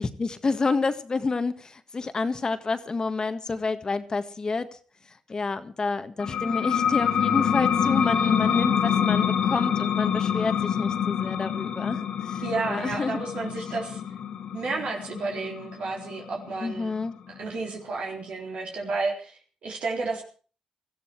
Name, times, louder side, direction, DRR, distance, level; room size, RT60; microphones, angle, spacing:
voice 1, 0.0-4.8 5.1-13.2 13.6-13.8 16.6-17.1, left 4 dB, 35° left, 10 dB, 1.7 m, -29 dB
sound 1, 6.2-17.5, left 8 dB, 80° left, 2.7 m, -26 dB
voice 2, 12.4-14.0 14.5-16.9 17.4-20.2, right 3 dB, 75° right, 0 dB, 3.8 m, -31 dB
18.5 x 14.0 x 4.6 m, 0.40 s
cardioid pair, 65°, 2 cm